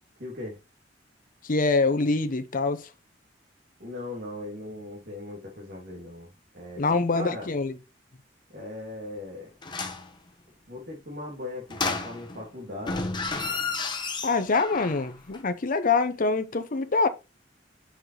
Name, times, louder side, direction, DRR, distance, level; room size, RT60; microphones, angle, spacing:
voice 1, 0.2-0.6 3.8-6.3 6.5-6.8 7.1-7.5 8.5-9.5 10.7-13.1, left 2 dB, 60° right, 2.7 m, -38 dB
voice 2, 1.4-2.9 6.8-7.8 14.2-17.1, left 3 dB, 50° left, 0.7 m, -25 dB
sound 1, 9.6-10.1 11.7-12.5 12.8-15.1 15.3-15.4, left 3 dB, 25° left, 1.1 m, -31 dB
7.0 x 5.8 x 3.2 m
head